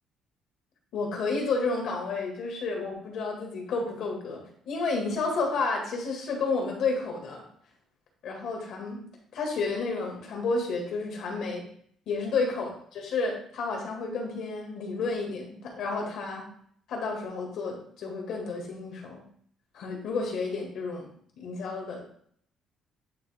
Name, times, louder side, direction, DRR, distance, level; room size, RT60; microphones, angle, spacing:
voice 1, 0.9-4.4 4.7-7.4 8.2-9.0 9.3-11.6 12.1-16.4 16.9-19.2 19.7-21.1 21.4-22.0, left 3 dB, 65° left, 1 dB, 1.9 m, -31 dB
9.4 x 3.3 x 3.5 m, 0.62 s
cardioid pair, 165°, 0 cm